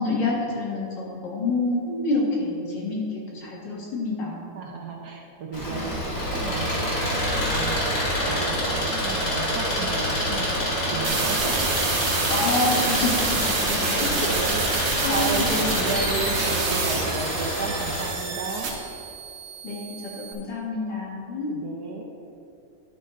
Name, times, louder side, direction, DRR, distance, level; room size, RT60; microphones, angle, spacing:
voice 1, 0.0-3.0 3.3-4.6 12.3-14.0 15.0-15.8 19.6-21.5, left 2 dB, 60° left, -3 dB, 2.2 m, -28 dB
voice 2, 4.5-12.0 13.8-18.8 21.5-22.0, right 4 dB, 65° right, 1 dB, 1.1 m, -33 dB
Engine, 5.5-18.1, equal, 40° left, 2.3 m, -26 dB
sound 1, 11.0-20.3, right 4 dB, 80° right, 1.9 m, -28 dB
10.5 x 5.4 x 4.3 m, 2.7 s
omnidirectional pair, 2.3 m